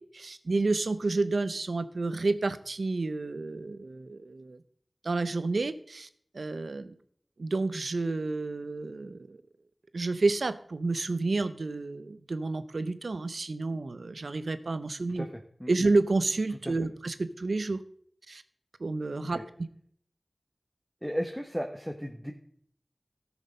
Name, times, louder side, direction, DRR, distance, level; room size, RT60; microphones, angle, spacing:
voice 1, 0.1-4.6 5.0-6.1 6.3-6.9 7.4-9.4 9.9-15.3 15.7-17.8 18.3-18.4 18.8-19.7, right 3 dB, 90° right, 13 dB, 0.6 m, -30 dB
voice 2, 21.0-22.3, equal, ahead, 2 dB, 1.1 m, -35 dB
13.5 x 6.2 x 5.2 m, 0.62 s
wide cardioid pair, 45°, 0 cm